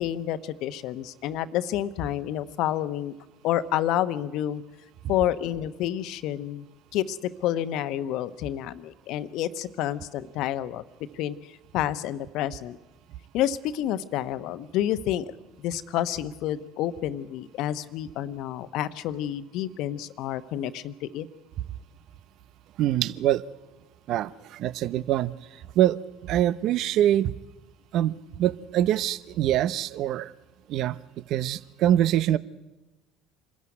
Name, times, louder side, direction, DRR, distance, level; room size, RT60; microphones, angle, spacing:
voice 1, 0.0-3.1 3.4-4.6 5.1-6.7 6.9-10.8 11.1-12.8 13.3-21.3, left 12 dB, 65° left, 13 dB, 1.1 m, -29 dB
voice 2, 22.8-23.4 24.1-27.3 27.9-30.3 30.7-31.0 31.3-32.4, right 12 dB, 60° right, 17 dB, 0.7 m, -24 dB
26.0 x 14.0 x 9.6 m, 1.1 s
hypercardioid pair, 65°, 0 cm